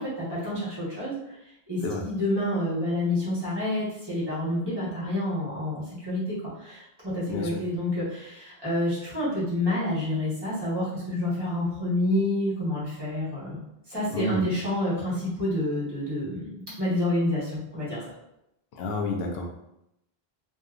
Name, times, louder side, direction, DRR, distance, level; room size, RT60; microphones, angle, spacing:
voice 1, 0.0-1.4 1.7-13.6 13.9-18.1, left 1 dB, 25° right, -9 dB, 1.1 m, -28 dB
voice 2, 7.3-7.6 14.1-14.4 18.8-19.5, left 2 dB, 75° left, 1 dB, 0.8 m, -29 dB
2.7 x 2.3 x 2.4 m, 0.83 s
omnidirectional pair, 1.0 m